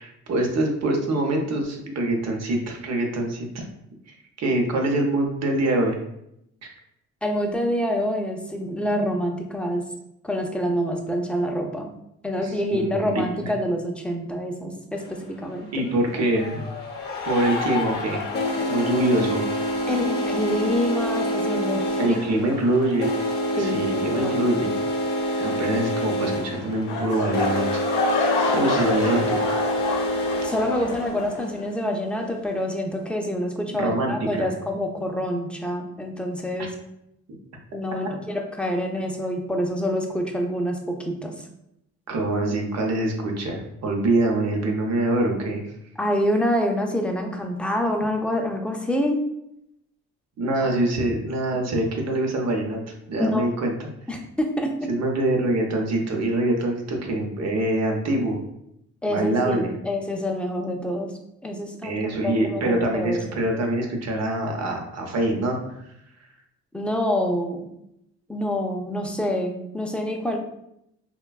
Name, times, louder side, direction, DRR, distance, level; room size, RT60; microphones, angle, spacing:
voice 1, 0.0-3.6 4.1-5.9 6.6-6.7 12.4-13.2 15.7-16.6 17.2-18.2 18.6-19.4 22.0-23.1 23.5-24.8 25.4-27.8 28.5-29.4 33.8-34.5 36.6-36.7 42.1-45.7 50.4-53.7 54.9-58.4 59.0-59.7 61.8-65.9 66.2-66.3, right 1 dB, 60° right, 2 dB, 0.7 m, -24 dB
voice 2, 7.2-9.8 10.2-11.9 12.2-15.8 19.9-22.4 23.6-24.5 30.4-36.7 37.7-41.5 46.0-49.2 53.2-53.5 54.1-54.9 59.0-61.1 61.4-61.9 62.2-63.2 66.7-67.7 68.3-70.4, equal, 5° left, 2 dB, 0.4 m, -26 dB
sound 1, 14.9-15.0 16.1-31.1, left 1 dB, 35° left, 0.7 m, -27 dB
sound 2, 26.9-31.9 32.2-32.5 33.0-33.1, left 3 dB, 85° left, 0.6 m, -27 dB
3.1 x 2.2 x 2.3 m, 0.80 s
cardioid pair, 90°, 30 cm